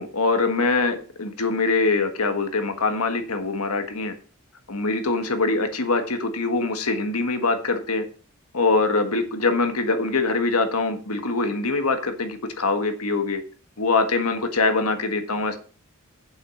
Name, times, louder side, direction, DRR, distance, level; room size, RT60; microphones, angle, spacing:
voice 1, 0.0-4.1 4.7-8.0 8.5-13.4 13.8-15.6, left 3 dB, 90° left, 1.6 m, -23 dB
7.3 x 6.0 x 6.3 m
head